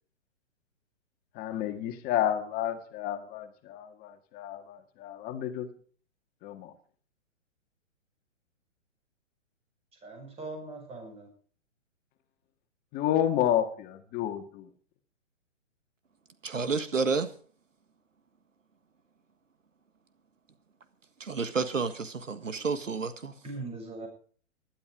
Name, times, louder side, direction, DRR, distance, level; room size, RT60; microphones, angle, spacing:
voice 1, 1.3-5.7 6.4-6.7 12.9-14.7, left 11 dB, 25° left, 1.9 m, -30 dB
voice 2, 9.9-11.3 22.4-22.8 23.4-24.1, right 2 dB, 15° right, 7.2 m, -41 dB
voice 3, 16.4-17.3 21.2-23.3, right 4 dB, 85° right, 1.7 m, -30 dB
16.5 x 12.5 x 5.0 m
hypercardioid pair, 130°, 37 cm